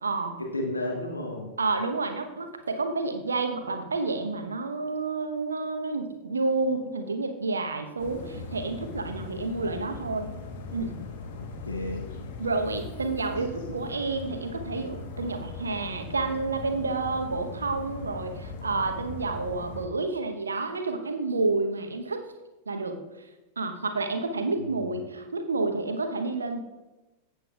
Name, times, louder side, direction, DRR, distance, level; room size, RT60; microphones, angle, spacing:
voice 1, 0.0-0.4 1.6-10.3 10.7-10.9 12.4-22.2 22.7-23.0 23.6-26.6, right 3 dB, 75° right, 6 dB, 0.9 m, -29 dB
voice 2, 0.5-1.5 11.4-12.1 24.6-25.0, left 1 dB, 80° left, 0 dB, 1.3 m, -33 dB
sound 1, 8.0-19.9, left 4 dB, 50° left, 1.2 m, -39 dB
14.5 x 8.0 x 2.4 m, 1.1 s
figure-of-eight pair, 90°, 0 cm